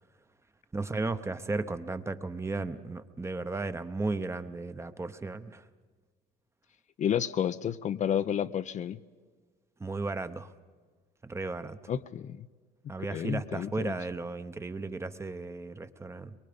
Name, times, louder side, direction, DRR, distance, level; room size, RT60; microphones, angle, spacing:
voice 1, 0.7-5.7 9.8-10.5 11.2-11.8 12.9-16.3, right 3 dB, 15° right, 11 dB, 0.8 m, -35 dB
voice 2, 7.0-9.0 11.9-12.5 13.1-13.9, left 9 dB, 45° left, 12 dB, 0.5 m, -31 dB
23.0 x 23.0 x 5.2 m, 1.5 s
cardioid pair, 110°, 17 cm